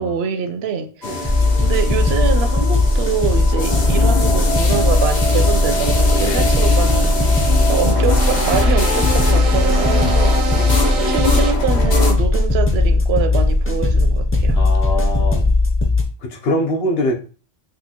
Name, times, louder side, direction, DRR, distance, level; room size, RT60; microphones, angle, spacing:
voice 1, 0.0-14.6, right 7 dB, 75° right, 0.8 m, -25 dB
sound 1, 1.0-12.1, left 1 dB, 50° left, 0.8 m, -24 dB
sound 2, 1.2-16.0, left 2 dB, 20° left, 0.4 m, -17 dB
voice 2, 6.2-6.6 10.5-10.7 14.6-15.4 16.2-17.1, left 1 dB, 70° left, 1.0 m, -23 dB
sound 3, 7.0-11.5, right 3 dB, 45° right, 0.5 m, -27 dB
4.3 x 2.4 x 2.8 m
omnidirectional pair, 1.1 m